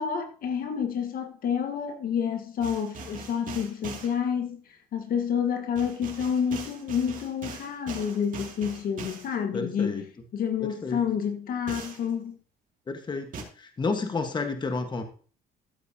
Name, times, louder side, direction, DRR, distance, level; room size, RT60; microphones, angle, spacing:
voice 1, 0.0-4.6 4.9-10.0 10.3-12.4, left 7 dB, 60° left, 1.5 m, -29 dB
sound 1, 2.6-4.1 5.8-9.4 11.7-12.1 13.3-13.4, right 5 dB, 50° right, 2.6 m, -41 dB
voice 2, 9.5-10.0 10.6-11.1 12.9-15.0, left 4 dB, 25° left, 1.5 m, -31 dB
14.0 x 7.9 x 2.9 m
cardioid pair, 110°, 17 cm